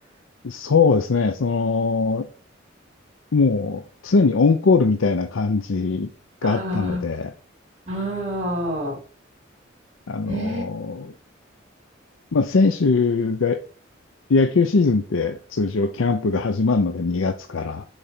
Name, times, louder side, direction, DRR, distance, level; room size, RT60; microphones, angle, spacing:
voice 1, 0.4-2.3 3.3-6.1 6.4-7.3 10.1-11.1 12.3-13.6 14.3-17.8, left 4 dB, 90° left, 0.6 m, -21 dB
voice 2, 6.4-7.0 7.9-9.0 10.3-10.6, equal, 35° right, 2.9 m, -27 dB
6.5 x 4.5 x 6.0 m
head